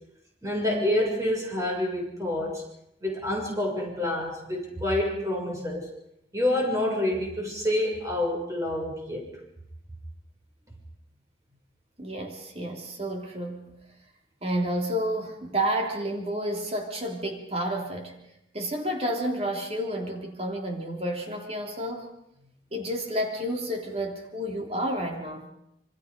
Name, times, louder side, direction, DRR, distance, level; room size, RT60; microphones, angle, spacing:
voice 1, 0.4-2.6 3.0-5.9 6.3-9.3, left 1 dB, 15° right, -1 dB, 6.8 m, -27 dB
voice 2, 12.0-13.8 14.4-18.1 18.5-22.1 22.7-25.5, right 1 dB, 35° right, 2 dB, 3.2 m, -30 dB
26.5 x 25.0 x 5.3 m, 0.79 s
head